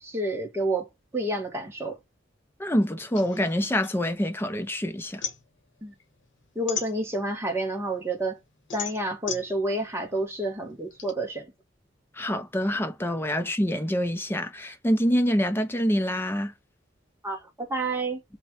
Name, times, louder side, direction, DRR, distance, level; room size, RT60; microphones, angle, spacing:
voice 1, 0.0-2.0 5.8-5.9 6.5-8.4 8.7-11.5 17.2-18.2, right 2 dB, 15° right, 1.1 m, -29 dB
voice 2, 2.6-5.2 12.2-16.5, equal, 10° left, 0.6 m, -26 dB
sound 1, 3.1-4.6 4.9-7.5 7.9-11.1, left 6 dB, 80° left, 0.9 m, -37 dB
3.1 x 2.2 x 4.2 m
head